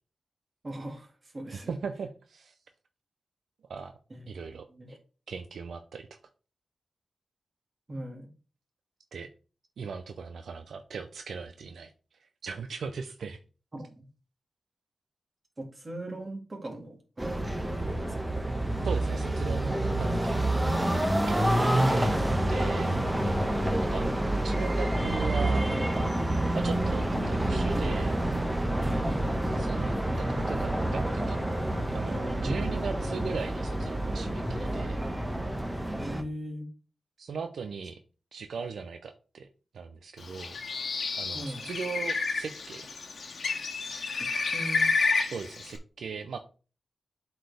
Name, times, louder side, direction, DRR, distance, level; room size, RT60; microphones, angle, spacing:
voice 1, 0.6-1.7 4.1-5.0 7.9-8.3 13.7-14.1 15.6-18.3 22.9-23.4 28.9-29.3 32.4-32.9 36.0-36.7 41.3-41.7 44.2-44.9, right 1 dB, 35° right, 3 dB, 2.0 m, -40 dB
voice 2, 1.5-2.6 3.7-4.0 4.3-4.6 5.3-6.1 9.1-9.3 9.8-11.9 12.2-13.4 18.8-20.5 21.3-22.9 23.8-25.7 26.5-28.2 29.6-31.4 31.9-35.0 37.2-38.0 38.3-39.5 39.7-40.6 41.1-42.9 45.3-46.4, right 5 dB, 85° right, 7 dB, 0.5 m, -38 dB
sound 1, 17.2-36.2, right 1 dB, 15° right, 1.1 m, -28 dB
Bird, 40.2-45.8, left 4 dB, 70° left, 1.3 m, -30 dB
7.7 x 4.5 x 3.4 m, 0.36 s
cardioid pair, 75°, 0 cm